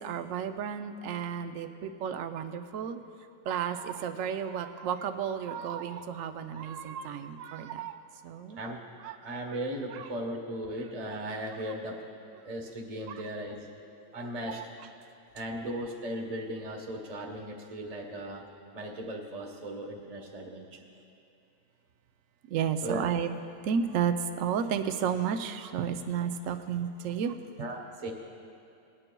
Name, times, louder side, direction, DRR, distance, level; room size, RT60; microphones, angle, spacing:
voice 1, 0.0-3.0 3.5-8.0 8.2-8.7 9.0-9.2 9.9-10.1 11.1-11.2 14.2-14.6 22.5-23.3 23.6-27.4, right 7 dB, 65° right, 8 dB, 0.8 m, -32 dB
voice 2, 9.2-12.0 12.4-13.7 14.1-14.6 15.3-18.4 18.7-20.8 22.8-23.1 27.6-28.1, right 1 dB, 25° right, 1 dB, 0.9 m, -37 dB
20.0 x 9.8 x 2.3 m, 2.8 s
omnidirectional pair, 1.8 m